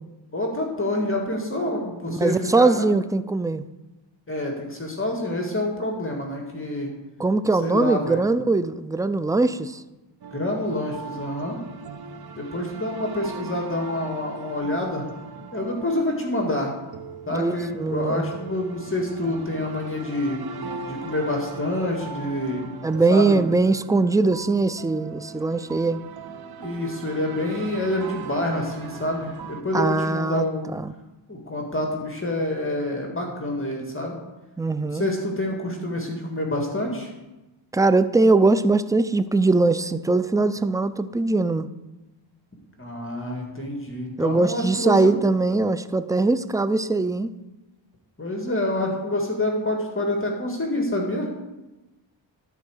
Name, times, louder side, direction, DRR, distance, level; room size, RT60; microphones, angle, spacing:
voice 1, 0.3-2.7 4.3-6.9 7.6-8.2 10.3-11.6 12.4-15.0 15.5-16.7 17.3-20.4 20.8-22.6 23.1-23.4 26.6-30.7 31.3-34.2 34.8-37.1 42.8-45.1 48.2-51.3, left 1 dB, 25° left, 1 dB, 1.9 m, -27 dB
voice 2, 2.1-3.6 7.2-9.8 17.3-18.3 22.8-26.0 29.7-30.5 30.7-30.9 34.6-35.1 37.7-41.7 44.2-47.3, right 3 dB, 10° right, 13 dB, 0.4 m, -21 dB
sound 1, 10.2-29.6, right 5 dB, 50° right, 0.9 m, -39 dB
12.5 x 4.6 x 6.4 m, 1.0 s
cardioid pair, 65°, 46 cm